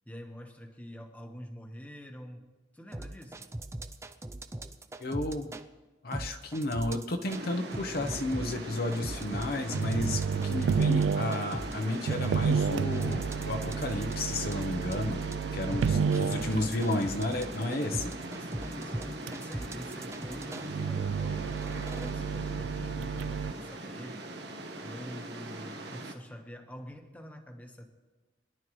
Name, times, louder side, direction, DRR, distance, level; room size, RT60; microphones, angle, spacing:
voice 1, 0.0-2.5 2.7-3.5 15.8-16.6 18.2-24.3 24.8-27.9, equal, 10° left, 3 dB, 1.2 m, -46 dB
sound 1, 2.9-5.6 6.1-7.4 7.7-20.7 21.3-22.1, right 1 dB, 15° right, 0.5 m, -39 dB
voice 2, 5.0-5.5 6.0-15.2 15.5-18.1, left 2 dB, 50° left, 5 dB, 0.8 m, -32 dB
sound 2, 7.3-26.1, right 1 dB, 60° right, 1.4 m, -41 dB
sound 3, 9.7-16.8 19.3-19.4 20.6-23.5, right 6 dB, 85° right, 0.3 m, -31 dB
23.0 x 11.5 x 3.1 m, 1.2 s
head